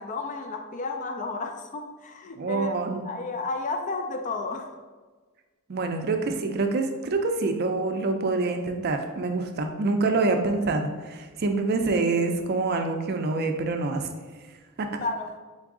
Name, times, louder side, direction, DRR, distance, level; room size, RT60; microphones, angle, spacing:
voice 1, 0.0-2.8 3.0-4.7 15.0-15.4, left 3 dB, 35° left, 0.3 m, -32 dB
voice 2, 2.4-3.0 5.7-14.1 14.8-14.9, right 3 dB, 45° right, 0.4 m, -26 dB
3.9 x 3.5 x 3.6 m
head